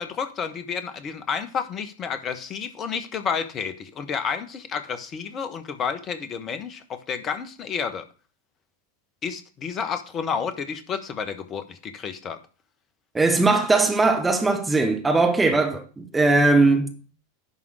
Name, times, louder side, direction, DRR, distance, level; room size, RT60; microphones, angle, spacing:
voice 1, 0.0-8.0 9.2-12.4, left 6 dB, 30° left, 1.2 m, -30 dB
voice 2, 13.1-16.9, right 3 dB, 10° right, 1.3 m, -20 dB
11.0 x 3.7 x 6.3 m
figure-of-eight pair, 90°, 0 cm